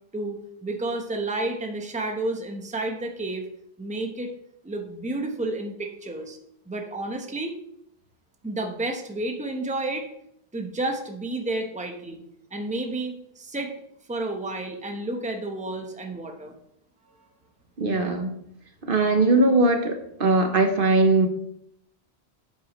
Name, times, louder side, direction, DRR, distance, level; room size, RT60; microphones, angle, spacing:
voice 1, 0.1-3.4 3.8-4.3 4.6-6.4 6.7-7.5 8.4-10.1 10.5-12.2 12.5-13.7 14.1-16.5, right 2 dB, 5° right, 3 dB, 0.9 m, -31 dB
voice 2, 17.8-18.4 18.9-21.3, right 2 dB, 55° right, 6 dB, 1.1 m, -20 dB
10.0 x 7.9 x 3.1 m, 0.76 s
omnidirectional pair, 1.1 m